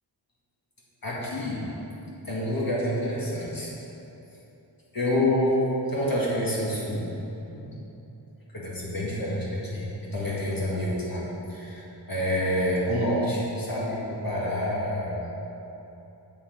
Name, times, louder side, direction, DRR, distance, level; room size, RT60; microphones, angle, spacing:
voice 1, 1.0-1.6 2.3-3.7 4.9-5.6 5.9-7.1 7.5-7.7 8.5-11.2 11.5-15.4, left 1 dB, 50° left, -6 dB, 2.1 m, -28 dB
7.3 x 6.8 x 5.2 m, 3.0 s
wide cardioid pair, 55°, 44 cm